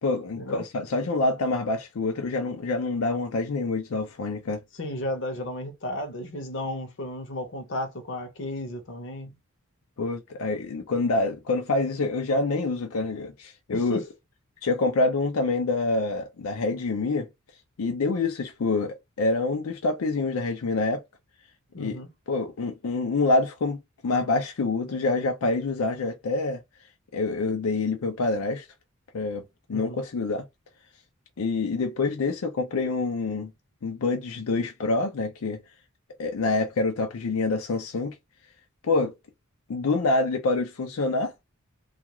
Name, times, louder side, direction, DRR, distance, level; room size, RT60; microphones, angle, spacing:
voice 1, 0.0-4.6 10.0-14.0 14.6-17.3 17.8-21.0 21.8-22.0 22.3-23.8 24.0-26.6 27.1-28.7 29.1-29.4 29.7-30.4 31.4-33.5 33.8-35.6 36.2-38.1 38.8-39.1 39.7-41.3, left 3 dB, 85° left, 0.5 m, -26 dB
voice 2, 4.7-9.3 13.7-14.0 21.7-22.1 29.7-30.0, left 1 dB, 60° left, 0.8 m, -34 dB
2.4 x 2.3 x 2.9 m
head